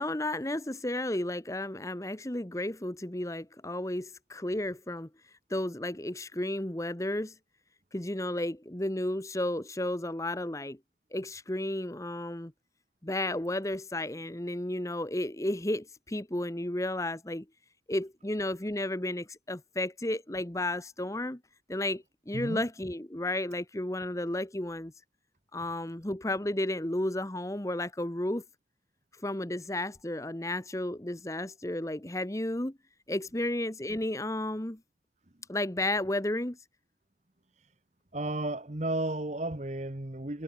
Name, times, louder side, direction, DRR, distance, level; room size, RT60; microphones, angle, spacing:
voice 1, 0.0-5.1 5.5-7.3 7.9-10.8 11.1-12.5 13.0-17.4 17.9-21.4 21.7-24.9 25.5-28.4 29.2-32.8 33.1-34.8 35.5-36.6, left 1 dB, 20° left, 1.1 m, -33 dB
voice 2, 38.1-40.4, right 1 dB, 40° right, 1.4 m, -33 dB
head